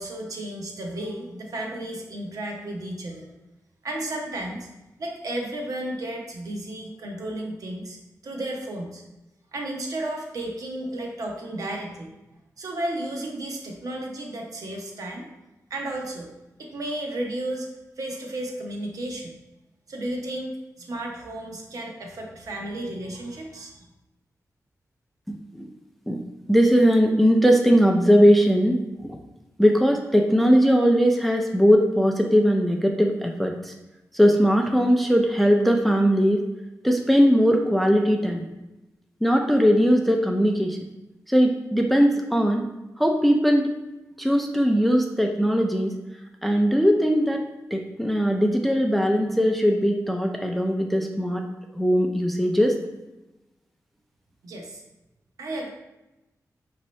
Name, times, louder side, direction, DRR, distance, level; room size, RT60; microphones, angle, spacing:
voice 1, 0.0-3.3 3.8-4.7 5.0-9.0 9.5-12.1 12.6-15.3 15.7-16.3 16.6-17.7 18.0-19.3 19.9-23.9 54.4-54.8 55.4-55.7, right 1 dB, 65° right, 0 dB, 0.7 m, -33 dB
voice 2, 25.3-25.7 26.1-26.2 26.5-29.2 29.6-33.7 34.1-36.4 36.8-38.4 39.2-40.8 41.3-42.6 43.0-43.7 44.2-45.9 46.4-47.4 47.7-51.5 51.7-52.8, equal, ahead, 2 dB, 0.3 m, -20 dB
5.2 x 2.7 x 3.1 m, 0.99 s
wide cardioid pair, 170°, 6 cm